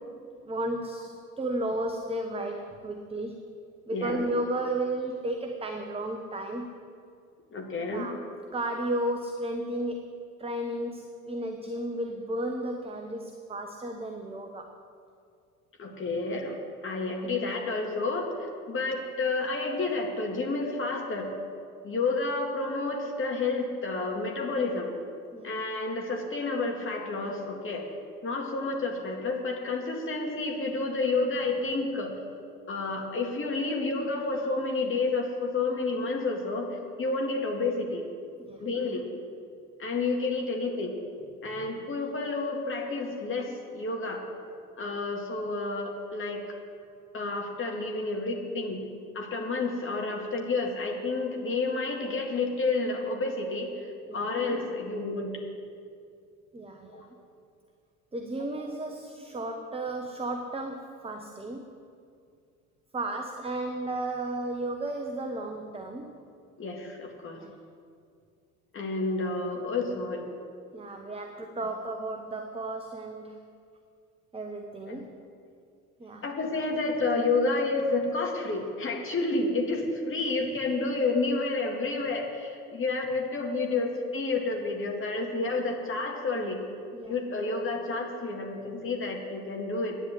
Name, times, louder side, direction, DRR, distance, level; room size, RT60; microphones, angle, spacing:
voice 1, 0.4-3.4 3.9-6.8 7.9-8.2 8.5-10.1 10.4-14.7 25.3-25.5 38.4-38.6 41.5-41.7 54.1-54.2 56.5-57.1 58.1-61.7 62.9-66.2 67.4-67.6 70.7-73.4 74.3-75.2 76.0-76.3 86.9-87.2, right 1 dB, 15° right, 4 dB, 1.0 m, -33 dB
voice 2, 3.9-4.2 7.5-8.1 15.8-21.3 21.8-24.9 25.4-27.9 28.2-32.2 32.7-38.0 38.6-39.1 39.8-41.0 41.4-44.2 44.8-46.4 47.1-48.8 49.1-55.3 56.9-57.1 59.2-59.3 66.6-67.4 68.7-70.2 74.9-75.0 76.2-86.6 87.1-90.0, left 3 dB, 25° left, 1 dB, 2.2 m, -30 dB
11.0 x 9.8 x 7.9 m, 2.3 s
figure-of-eight pair, 65°, 45 cm